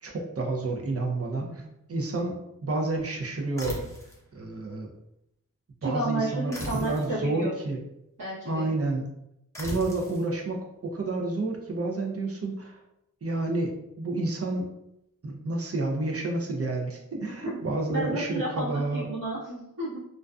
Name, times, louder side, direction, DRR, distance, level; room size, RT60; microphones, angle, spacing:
voice 1, 0.0-2.4 2.6-3.8 4.3-4.9 5.8-7.8 8.5-9.1 9.6-12.8 13.2-14.7 15.2-19.1, right 2 dB, 45° right, 1 dB, 0.5 m, -30 dB
vintage camera flash bulb pops sound design, 3.6-4.2 6.5-7.1 9.5-10.2, equal, 10° left, 0.7 m, -37 dB
voice 2, 5.8-7.5 8.2-8.7 17.9-20.0, right 2 dB, 75° right, -12 dB, 1.0 m, -31 dB
2.5 x 2.2 x 2.3 m, 0.81 s
wide cardioid pair, 55°, 33 cm